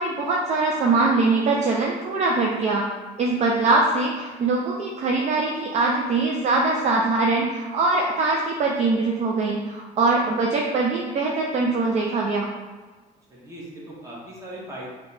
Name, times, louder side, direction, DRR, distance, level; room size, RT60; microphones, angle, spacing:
voice 1, 0.0-2.8 3.2-12.5, right 3 dB, 40° right, -1 dB, 0.4 m, -22 dB
voice 2, 13.3-14.9, right 1 dB, 20° right, -5 dB, 1.1 m, -39 dB
2.9 x 2.2 x 3.9 m, 1.3 s
cardioid pair, 110°, 17 cm